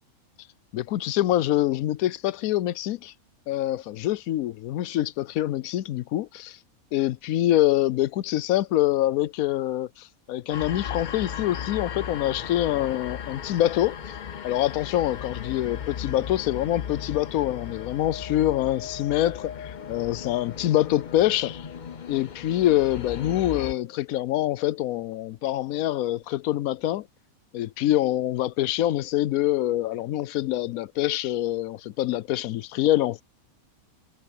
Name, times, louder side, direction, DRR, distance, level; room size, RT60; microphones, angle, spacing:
voice 1, 0.7-3.1 3.5-6.6 6.9-14.1 14.4-21.7 22.1-27.1 27.5-33.2, left 14 dB, 75° left, 1.0 m, -25 dB
sound 1, 10.5-23.7, left 8 dB, 45° left, 0.6 m, -36 dB
omnidirectional pair, 1.5 m